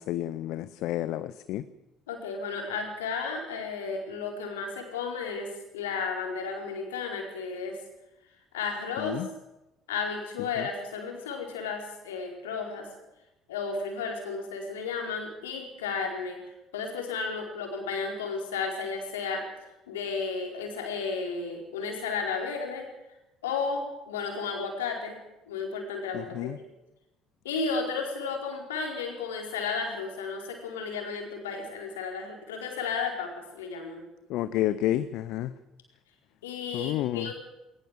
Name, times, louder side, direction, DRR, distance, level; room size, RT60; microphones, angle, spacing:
voice 1, 0.0-1.6 9.0-9.3 10.6-10.7 26.1-26.6 34.3-35.5 36.7-37.3, left 13 dB, 65° left, 14 dB, 0.8 m, -30 dB
voice 2, 2.1-5.5 5.7-7.8 8.5-9.2 9.9-12.9 13.5-16.4 16.7-19.4 19.9-22.8 23.4-25.2 25.5-26.5 27.4-34.0 36.4-37.3, left 5 dB, 80° left, 2 dB, 4.6 m, -33 dB
20.5 x 19.5 x 7.5 m, 0.95 s
hypercardioid pair, 55°, 0 cm